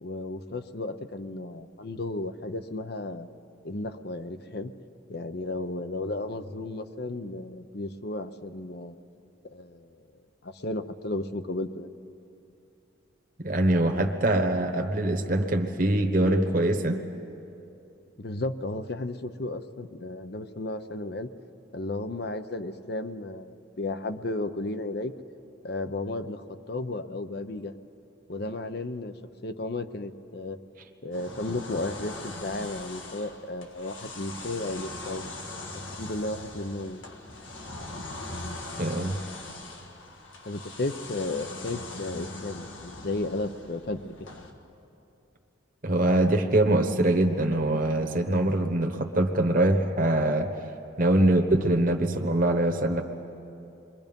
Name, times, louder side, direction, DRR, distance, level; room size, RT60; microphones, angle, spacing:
voice 1, 0.0-3.3 3.6-4.7 5.1-9.0 9.4-10.0 10.4-11.9 18.2-21.3 21.7-25.1 25.6-27.7 28.3-29.1 29.4-30.6 31.0-35.2 35.9-37.0 40.5-44.1, left 2 dB, 55° left, 10 dB, 0.8 m, -34 dB
voice 2, 13.4-17.0 38.8-39.2 45.8-50.5 51.0-53.0, right 1 dB, 45° right, 3 dB, 1.2 m, -23 dB
sound 1, 31.1-44.5, left 2 dB, 80° left, 1.8 m, -41 dB
27.5 x 22.0 x 5.3 m, 2.7 s
head